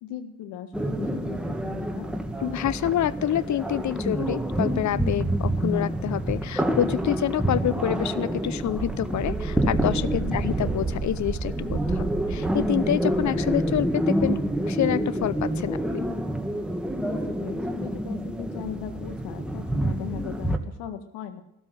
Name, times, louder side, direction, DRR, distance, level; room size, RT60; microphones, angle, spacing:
voice 1, 0.0-2.1 10.2-10.5 17.0-21.4, left 9 dB, 70° left, 8 dB, 1.8 m, -38 dB
sound 1, 0.7-20.6, right 1 dB, ahead, 1.8 m, -28 dB
voice 2, 2.4-14.4 14.7-16.0, left 12 dB, 45° left, 18 dB, 0.8 m, -27 dB
Wind, 8.6-13.9, right 5 dB, 30° right, 3.0 m, -32 dB
15.5 x 13.0 x 6.3 m, 0.79 s
hypercardioid pair, 60°, 41 cm